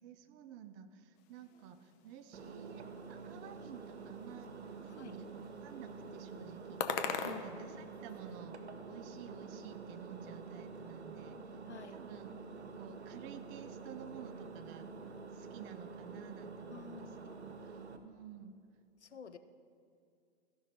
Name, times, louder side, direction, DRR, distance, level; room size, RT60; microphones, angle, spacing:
voice 1, 0.0-8.6 8.9-11.6 11.9-12.3 12.7-14.9 15.3-17.1 17.4-18.5, right 9 dB, 35° right, 10 dB, 0.7 m, -52 dB
sound 1, 1.2-8.4, left 7 dB, 40° left, 0.9 m, -45 dB
Engine, 2.3-18.0, right 4 dB, 80° right, 0.9 m, -48 dB
voice 2, 11.7-12.0 16.7-17.4 19.0-19.4, left 7 dB, 90° left, 10 dB, 0.7 m, -49 dB
14.5 x 5.6 x 5.2 m, 2.4 s
figure-of-eight pair, 100°, 33 cm